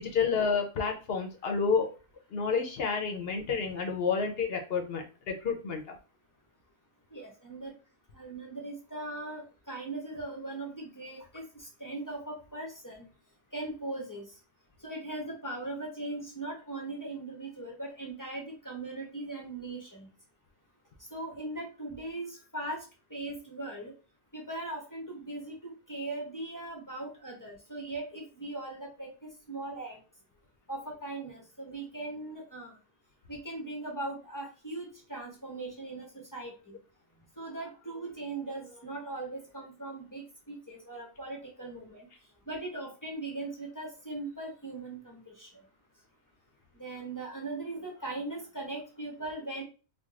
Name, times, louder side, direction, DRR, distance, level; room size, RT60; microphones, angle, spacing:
voice 1, 0.0-1.9 2.3-6.0, left 5 dB, 65° left, 3 dB, 0.8 m, -30 dB
voice 2, 7.1-7.7 8.1-13.0 13.5-14.2 14.8-20.1 21.1-22.8 23.1-23.9 24.3-29.1 29.5-30.0 30.7-32.7 33.3-36.8 37.4-42.1 42.5-45.5 46.8-49.6, right 2 dB, 20° left, -2 dB, 0.7 m, -39 dB
4.6 x 2.2 x 2.4 m, 0.35 s
omnidirectional pair, 1.1 m